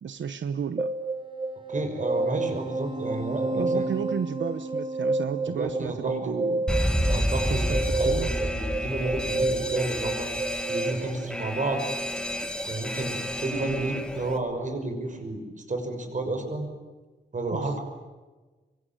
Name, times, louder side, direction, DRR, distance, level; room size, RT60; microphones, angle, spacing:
voice 1, 0.0-0.9 3.5-6.6 7.5-8.3 17.5-17.8, right 7 dB, 90° right, 11 dB, 1.0 m, -32 dB
sound 1, 0.8-10.9, right 2 dB, 25° right, 2.7 m, -30 dB
voice 2, 1.7-3.9 5.5-6.4 7.1-10.3 10.7-11.8 12.7-16.7 17.3-17.8, right 2 dB, 40° right, 5 dB, 6.0 m, -31 dB
Alarm, 6.7-14.4, equal, 5° left, 2.2 m, -29 dB
25.5 x 24.5 x 9.0 m, 1.2 s
wide cardioid pair, 130°, 19 cm